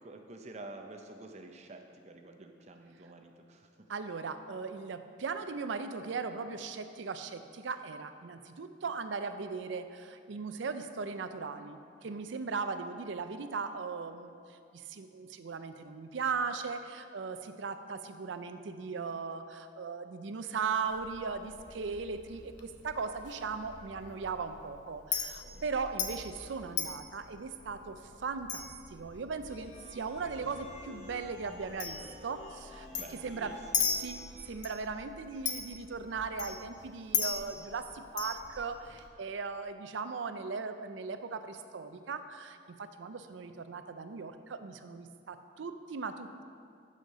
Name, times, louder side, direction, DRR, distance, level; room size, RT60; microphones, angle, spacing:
voice 1, 0.0-3.9 25.5-25.7 32.9-34.0 43.4-43.6, right 2 dB, 35° right, 5 dB, 0.6 m, -49 dB
voice 2, 3.9-32.9 33.2-33.6 34.0-34.2 34.4-46.4, right 5 dB, 80° right, 9 dB, 0.5 m, -38 dB
Chink clink, 20.9-39.1, left 7 dB, 65° left, 0.8 m, -40 dB
sound 1, 29.5-34.5, left 1 dB, 40° left, 0.9 m, -52 dB
6.5 x 6.4 x 5.4 m, 2.3 s
head